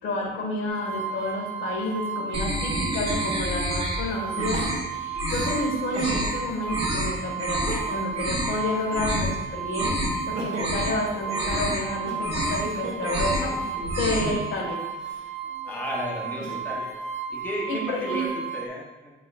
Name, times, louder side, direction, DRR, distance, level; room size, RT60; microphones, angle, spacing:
voice 1, 0.0-10.0 10.3-14.7 17.7-18.3, left 2 dB, 70° left, -1 dB, 1.7 m, -30 dB
sound 1, 0.7-18.7, right 5 dB, 50° right, 1.0 m, -33 dB
sound 2, 2.3-4.0 4.3-4.8 5.1-5.6 5.9-6.3 6.7-7.1 7.4-7.8 8.1-8.6 8.9-9.3 9.6-10.2 10.5-11.0 11.3-11.8 12.1-12.7 13.0-13.5 13.8-14.3, equal, 30° right, 1.7 m, -28 dB
Crying sobbing, 4.5-6.2 6.7-6.8 7.5-8.2 8.6-9.6 10.1-14.1 14.8-16.8 17.4-18.2, right 2 dB, 80° right, 1.4 m, -40 dB
voice 2, 14.1-14.4 15.6-16.9 17.3-19.1, left 1 dB, 10° left, -4 dB, 0.9 m, -34 dB
8.3 x 5.8 x 2.4 m, 1.1 s
cardioid pair, 165°, 21 cm